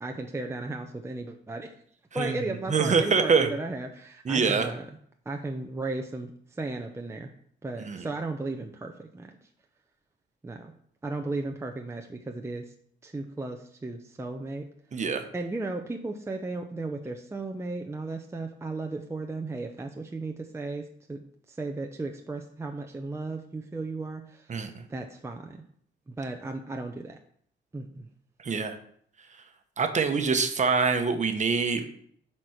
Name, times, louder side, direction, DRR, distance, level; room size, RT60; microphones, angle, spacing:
voice 1, 0.0-1.7 2.1-4.9 5.3-7.3 7.6-9.4 10.4-10.7 11.0-12.7 13.0-14.7 15.3-24.6 24.9-25.6 26.1-27.2 27.7-28.1, right 2 dB, 15° right, 3 dB, 0.7 m, -35 dB
voice 2, 2.7-3.5 4.2-4.7 7.8-8.1 14.9-15.2 24.5-24.8 28.4-28.8 29.8-31.8, right 5 dB, 35° right, 6 dB, 1.1 m, -25 dB
7.6 x 4.4 x 6.4 m, 0.64 s
cardioid pair, 90°, 20 cm